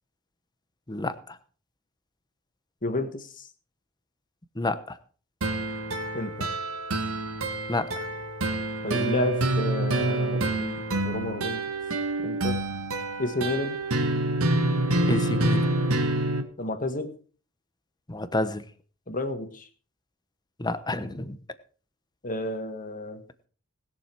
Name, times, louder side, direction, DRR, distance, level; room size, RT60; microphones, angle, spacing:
voice 1, 0.9-1.4 4.6-5.0 7.7-7.9 15.1-15.7 18.1-18.6 20.6-21.4, left 2 dB, 20° left, 11 dB, 0.9 m, -29 dB
voice 2, 2.8-3.5 6.1-6.5 8.8-11.6 12.2-12.6 13.2-13.8 16.6-17.1 19.1-19.7 22.2-23.2, left 2 dB, 40° left, 7 dB, 1.7 m, -31 dB
sound 1, 5.4-16.4, right 2 dB, 85° right, 1.7 m, -27 dB
20.0 x 7.1 x 4.5 m, 0.41 s
head